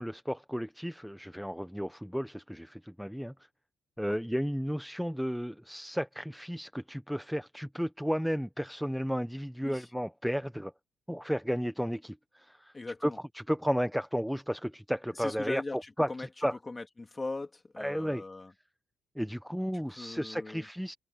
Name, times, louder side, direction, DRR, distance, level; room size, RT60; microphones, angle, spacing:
voice 1, 0.0-3.3 4.0-10.7 11.1-12.7 13.0-15.6 16.0-16.6 17.8-18.2 19.2-20.9, equal, ahead, 0.9 m, -33 dB
voice 2, 12.7-13.2 15.2-16.3 16.7-18.5 19.7-20.7, left 3 dB, 20° left, 3.2 m, -39 dB
cardioid pair, 90°, 0 cm